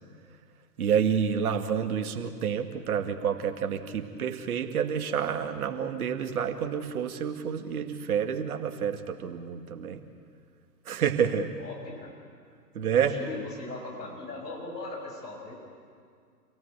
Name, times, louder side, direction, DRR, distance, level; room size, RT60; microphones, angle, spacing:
voice 1, 0.8-10.0 10.9-11.5 12.8-13.2, right 7 dB, 60° right, 6 dB, 2.2 m, -28 dB
voice 2, 11.6-12.1 12.9-15.6, left 2 dB, 80° left, -1 dB, 7.0 m, -39 dB
27.5 x 17.5 x 8.2 m, 2.1 s
figure-of-eight pair, 115°, 48 cm